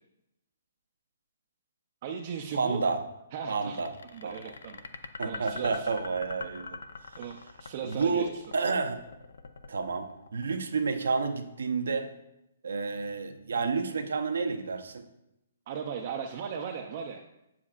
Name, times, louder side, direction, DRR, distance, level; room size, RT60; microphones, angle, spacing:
voice 1, 2.0-2.8 3.3-4.8 5.2-5.9 7.2-8.3 15.7-17.2, right 7 dB, 30° right, 2 dB, 0.4 m, -37 dB
voice 2, 2.5-3.0 3.5-3.9 4.2-4.4 5.2-6.8 7.8-9.0 9.7-12.1 12.6-15.0, right 4 dB, 80° right, 6 dB, 0.7 m, -30 dB
sound 1, 3.7-10.9, left 4 dB, 75° left, 0.5 m, -42 dB
7.4 x 7.1 x 2.4 m, 0.89 s
hypercardioid pair, 175°, 0 cm